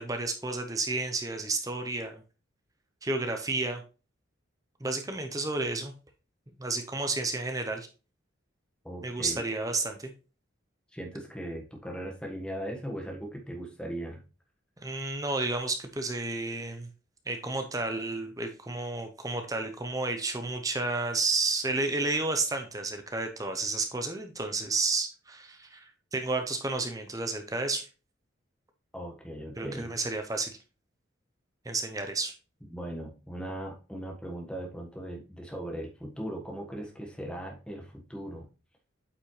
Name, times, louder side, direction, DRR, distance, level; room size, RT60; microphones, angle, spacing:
voice 1, 0.0-2.2 3.0-3.8 4.8-5.9 6.6-7.9 9.0-10.1 14.8-16.9 17.3-27.9 29.6-30.5 31.6-32.3, right 3 dB, 15° right, 5 dB, 0.7 m, -31 dB
voice 2, 8.8-9.4 10.9-14.2 28.9-29.9 32.7-38.5, right 1 dB, 5° left, 0 dB, 1.5 m, -38 dB
8.5 x 5.4 x 3.2 m, 0.33 s
head